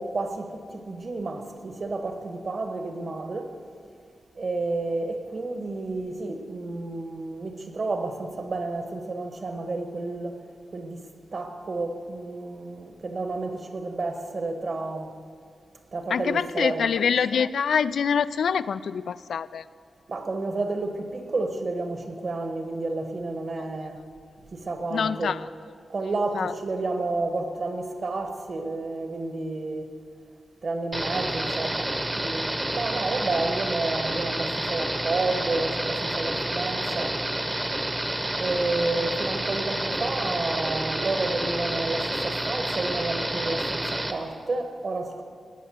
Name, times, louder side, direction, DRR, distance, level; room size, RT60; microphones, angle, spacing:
voice 1, 0.0-3.5 4.3-10.4 10.7-11.1 11.3-15.1 15.9-16.8 20.1-24.0 24.5-25.3 25.9-29.9 30.6-37.2 38.4-45.2, right 3 dB, 50° right, 1.5 m, -30 dB
voice 2, 16.1-19.7 23.8-23.9 24.9-25.5 26.3-26.5, left 7 dB, 85° left, 0.4 m, -25 dB
sound 1, 30.9-44.1, right 1 dB, 15° right, 0.9 m, -29 dB
18.5 x 6.7 x 8.0 m
wide cardioid pair, 140°, 0 cm